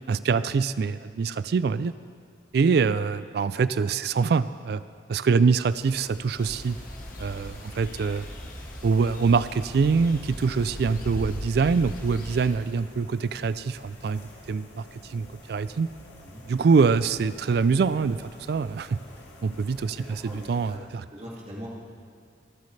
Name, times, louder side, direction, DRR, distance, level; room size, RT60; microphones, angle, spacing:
voice 1, 0.1-1.9 2.5-4.8 5.1-6.8 7.2-8.3 8.8-14.2 14.5-15.9 16.5-19.0 19.4-21.0, right 5 dB, 60° right, 15 dB, 0.3 m, -24 dB
sound 1, 5.7-20.8, left 1 dB, 70° left, 2.1 m, -49 dB
sound 2, 6.4-12.5, left 1 dB, 50° left, 1.4 m, -39 dB
voice 2, 19.9-20.8 21.1-21.7, equal, 35° right, -5 dB, 2.2 m, -42 dB
24.0 x 8.2 x 3.3 m, 2.3 s
head